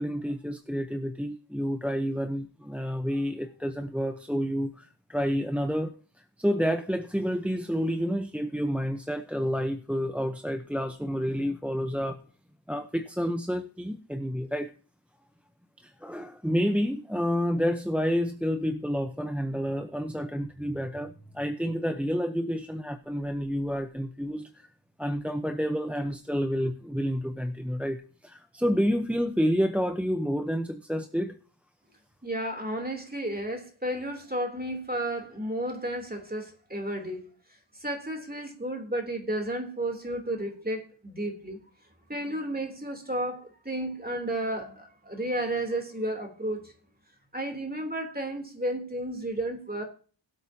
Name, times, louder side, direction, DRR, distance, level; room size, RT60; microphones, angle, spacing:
voice 1, 0.0-5.9 6.4-12.2 12.7-14.7 15.8-24.7 25.0-31.4, equal, 5° right, 8 dB, 0.8 m, -29 dB
voice 2, 32.2-37.3 37.7-41.6 42.1-46.7 47.3-49.8, right 1 dB, 20° right, 3 dB, 3.2 m, -32 dB
21.5 x 8.2 x 2.8 m, 0.40 s
wide cardioid pair, 55°, 47 cm